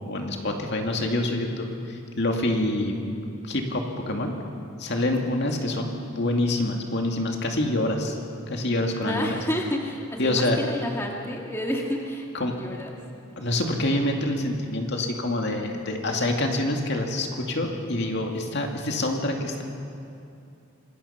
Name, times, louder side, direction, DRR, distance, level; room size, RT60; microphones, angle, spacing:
voice 1, 0.0-3.0 3.4-4.4 4.8-8.2 8.5-9.4 10.2-10.6 12.3-12.6 13.4-19.6, left 1 dB, 55° left, 2 dB, 2.3 m, -26 dB
voice 2, 9.0-13.0, left 1 dB, 10° left, 0 dB, 1.9 m, -30 dB
26.0 x 21.0 x 5.8 m, 2.6 s
head